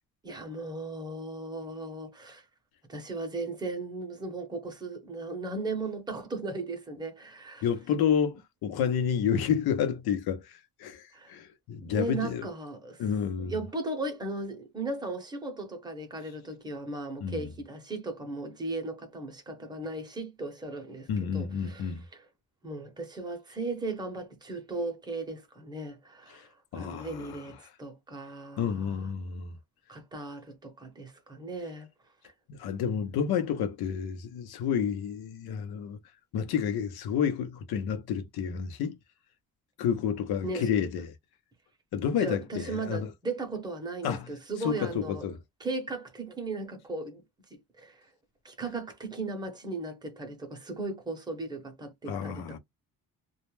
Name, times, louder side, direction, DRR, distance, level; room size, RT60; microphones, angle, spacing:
voice 1, 0.2-2.4 2.9-7.7 11.1-11.4 11.8-13.1 13.4-22.3 22.6-29.1 29.9-31.9 32.2-32.3 40.4-40.7 42.2-45.3 45.6-47.2 47.5-48.1 48.4-52.6, right 2 dB, 10° right, 0.6 m, -37 dB
voice 2, 7.6-12.5 13.0-13.5 17.2-17.5 21.1-22.1 26.3-26.4 26.7-27.5 28.6-29.6 32.5-36.0 36.3-39.0 39.8-41.1 41.9-43.1 44.0-44.3 44.6-45.4 52.1-52.6, left 7 dB, 85° left, 0.7 m, -30 dB
2.3 x 2.0 x 3.1 m
cardioid pair, 170°, 36 cm